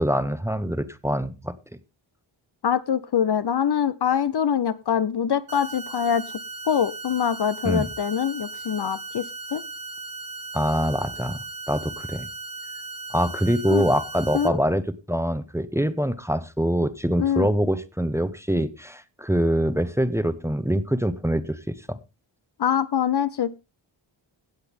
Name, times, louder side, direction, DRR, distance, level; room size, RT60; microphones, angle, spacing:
voice 1, 0.0-1.5 7.6-7.9 10.5-11.4 11.7-12.3 13.1-14.8 15.1-22.0, equal, 5° right, 0.9 m, -24 dB
voice 2, 2.6-6.2 6.7-9.6 13.7-13.8 14.3-14.6 17.2-17.5 22.6-23.6, left 8 dB, 55° left, 0.7 m, -24 dB
sound 1, 5.5-14.5, right 2 dB, 45° right, 1.4 m, -37 dB
17.0 x 7.9 x 3.5 m
wide cardioid pair, 100°, 49 cm